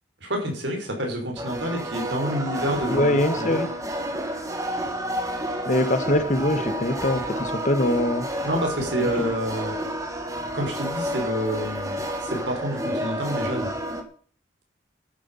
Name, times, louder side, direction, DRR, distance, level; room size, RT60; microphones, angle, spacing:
voice 1, 0.2-3.6 8.4-9.7 10.5-13.7, equal, 90° right, 2 dB, 5.3 m, -28 dB
sound 1, 1.4-14.0, equal, 20° right, 1.7 m, -30 dB
voice 2, 2.9-3.7 5.6-8.3 9.0-9.3, left 1 dB, 45° left, 11 dB, 1.2 m, -23 dB
12.0 x 10.0 x 5.6 m, 0.44 s
head